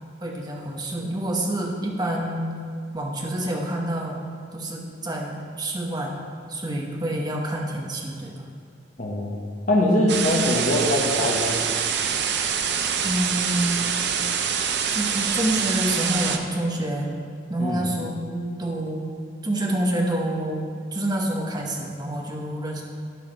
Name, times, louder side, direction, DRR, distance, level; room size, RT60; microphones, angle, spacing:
voice 1, 0.2-2.5 2.9-4.2 4.5-6.2 6.5-8.3 13.0-13.9 14.9-17.1 17.5-19.1 19.4-22.8, right 1 dB, 20° right, -1 dB, 0.9 m, -27 dB
voice 2, 9.0-11.6 17.6-17.8, left 1 dB, 45° left, -1 dB, 1.2 m, -22 dB
sound 1, 10.1-16.4, right 7 dB, 60° right, 0.6 m, -25 dB
11.5 x 4.7 x 4.6 m, 2.1 s
head